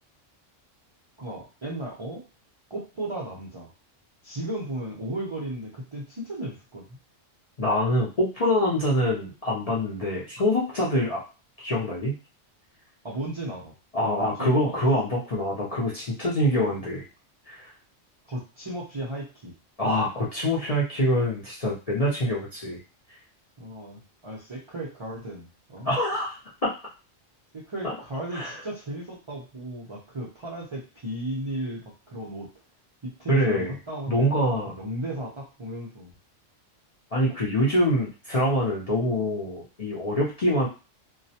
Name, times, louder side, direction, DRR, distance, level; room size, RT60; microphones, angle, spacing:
voice 1, 1.2-2.2 2.7-3.7 4.2-7.0 13.0-13.7 14.2-14.8 18.3-19.6 23.6-25.9 27.5-32.5 33.0-36.1, right 1 dB, 40° right, -5 dB, 0.4 m, -35 dB
voice 2, 7.6-11.2 11.6-12.2 13.9-17.0 17.5-17.7 19.8-22.8 25.8-26.7 27.8-27.9 28.3-28.6 33.3-33.7 34.1-34.7 37.1-40.7, equal, 45° left, -6 dB, 0.5 m, -25 dB
2.3 x 2.1 x 2.7 m, 0.31 s
omnidirectional pair, 1.3 m